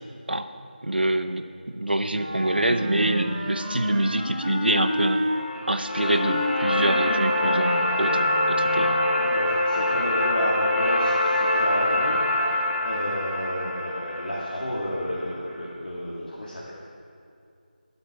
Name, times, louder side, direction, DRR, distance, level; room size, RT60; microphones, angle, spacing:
voice 1, 0.8-1.4 1.7-5.2 5.7-9.0, right 1 dB, 85° right, 8 dB, 0.8 m, -25 dB
Wind instrument woodwind instrument, 2.1-5.3 6.0-8.7, equal, 25° right, 2.1 m, -30 dB
sound 1, 5.3-15.4, left 1 dB, 85° left, 1.9 m, -25 dB
voice 2, 9.2-12.6 12.8-16.7, equal, 60° left, -6 dB, 1.8 m, -31 dB
13.0 x 8.2 x 4.6 m, 2.4 s
figure-of-eight pair, 170°, 5 cm